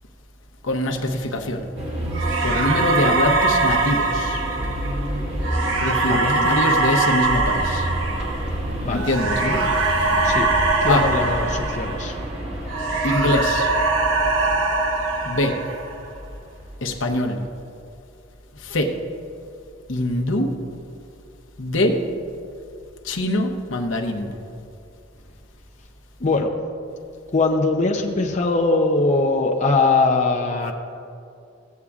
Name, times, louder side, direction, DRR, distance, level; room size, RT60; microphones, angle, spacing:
voice 1, 0.6-1.6 2.4-4.4 5.8-7.9 8.9-9.6 10.9-11.1 13.0-13.7 15.2-15.6 16.8-17.4 18.6-18.9 19.9-20.5 21.6-22.0 23.0-24.3, left 1 dB, 80° left, 3 dB, 0.9 m, -23 dB
sound 1, 1.7-16.9, equal, 35° right, 1.6 m, -31 dB
sound 2, 2.1-12.3 12.7-16.1, right 3 dB, 90° right, 0.9 m, -22 dB
voice 2, 6.1-6.9 8.8-9.1 10.2-10.5 10.8-12.1 26.2-26.5 27.3-30.7, left 3 dB, 40° left, 1 dB, 0.6 m, -21 dB
sound 3, 7.2-12.1, right 1 dB, 55° right, 2.3 m, -32 dB
15.5 x 8.2 x 2.4 m, 2.4 s
head